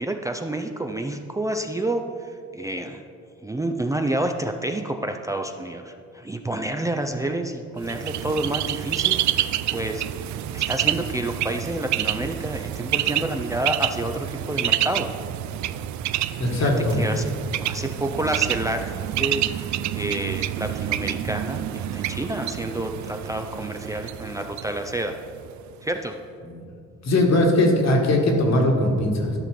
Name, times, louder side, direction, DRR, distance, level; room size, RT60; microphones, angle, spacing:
voice 1, 0.0-3.0 3.4-10.1 10.5-15.2 16.5-16.7 17.0-17.3 17.6-25.2 25.8-26.2, right 1 dB, 10° right, 5 dB, 0.5 m, -29 dB
Bird, 7.8-25.6, right 12 dB, 70° right, 0.5 m, -28 dB
voice 2, 16.4-17.0 26.4-26.6 27.0-29.3, left 1 dB, 60° left, 0 dB, 2.1 m, -20 dB
12.5 x 5.7 x 5.2 m, 2.3 s
cardioid pair, 90°, 30 cm